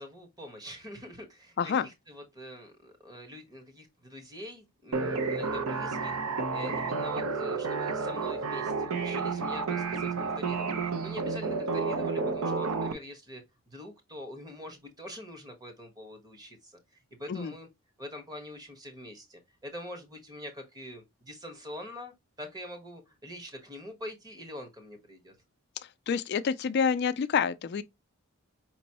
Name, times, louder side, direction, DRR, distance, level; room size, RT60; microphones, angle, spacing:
voice 1, 0.0-6.2 6.5-17.7 18.0-25.3, equal, 15° right, 1.1 m, -44 dB
sound 1, 4.9-12.9, right 4 dB, 80° right, 0.7 m, -31 dB
voice 2, 25.8-27.8, left 6 dB, 50° left, 0.3 m, -28 dB
5.2 x 3.0 x 2.8 m
head